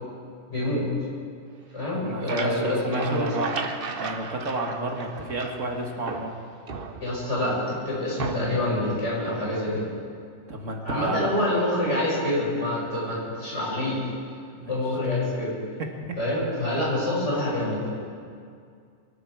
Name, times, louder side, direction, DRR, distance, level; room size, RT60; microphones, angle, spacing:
voice 1, 0.5-0.9 1.7-3.3 7.0-9.9 10.8-14.0 14.7-15.5 16.2-17.9, left 1 dB, 65° left, -5 dB, 6.0 m, -26 dB
sound 1, 1.8-5.7 6.1-7.4 8.2-8.7, right 4 dB, 50° right, 1.2 m, -35 dB
voice 2, 1.9-3.5 4.0-6.3 10.5-11.3 14.6-14.7 15.8-16.2, right 2 dB, 75° right, 2 dB, 2.1 m, -31 dB
23.5 x 12.5 x 4.8 m, 2.2 s
omnidirectional pair, 1.3 m